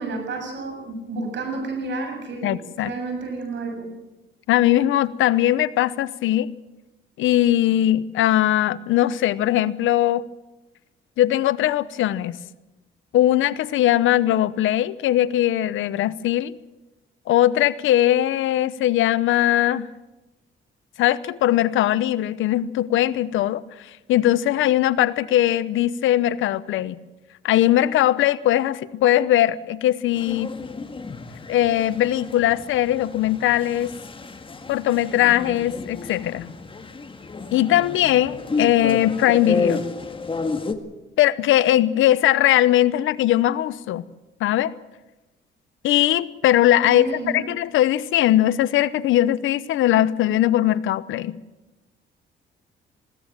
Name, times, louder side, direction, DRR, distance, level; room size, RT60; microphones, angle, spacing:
voice 1, 0.0-3.9 46.8-47.5, right 3 dB, 65° right, 4 dB, 7.3 m, -31 dB
voice 2, 2.4-2.9 4.5-6.5 7.2-10.3 11.2-12.4 13.1-16.6 17.3-19.9 21.0-27.0 27.4-30.5 31.5-33.9 34.7-36.5 37.5-39.8 41.2-44.0 44.4-44.7 45.8-47.1 47.3-51.4, left 13 dB, 85° left, 17 dB, 0.9 m, -20 dB
sound 1, 30.2-40.7, left 4 dB, 25° left, 1.8 m, -31 dB
21.0 x 17.5 x 7.6 m, 1.0 s
cardioid pair, 90°, 20 cm